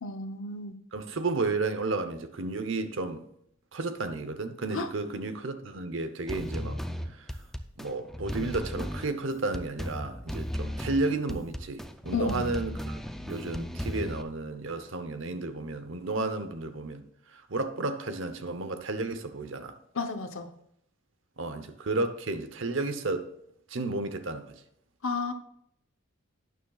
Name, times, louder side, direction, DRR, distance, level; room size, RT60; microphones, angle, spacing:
voice 1, 0.0-0.8 4.7-4.9 12.1-12.5 19.9-20.5 25.0-25.3, left 4 dB, 70° left, 0.9 m, -32 dB
voice 2, 0.9-3.2 3.7-6.8 7.8-17.0 17.3-19.8 21.4-23.3 23.7-24.6, right 3 dB, 65° right, 0.8 m, -32 dB
sound 1, 6.3-14.2, equal, ahead, 0.4 m, -36 dB
11.5 x 9.2 x 2.4 m
head